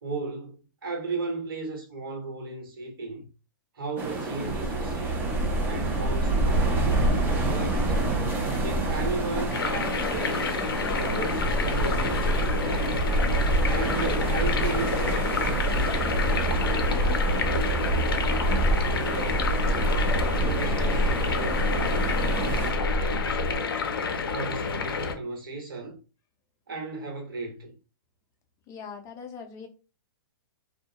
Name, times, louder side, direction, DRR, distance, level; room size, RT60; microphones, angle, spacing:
voice 1, 0.0-3.3 3.7-5.3 5.6-8.0 8.6-10.5 11.0-13.0 13.6-17.6 18.7-19.6 20.3-23.8 24.3-26.0 26.7-27.7, right 3 dB, 75° right, 1.2 m, -36 dB
sound 1, 4.0-22.7, right 2 dB, 15° right, 0.6 m, -32 dB
Bark, 4.4-23.6, right 1 dB, 35° right, 1.3 m, -27 dB
sound 2, 9.5-25.2, left 5 dB, 90° left, 0.5 m, -29 dB
voice 2, 28.7-29.7, left 6 dB, 25° left, 0.5 m, -41 dB
2.3 x 2.1 x 2.8 m
hypercardioid pair, 130°, 12 cm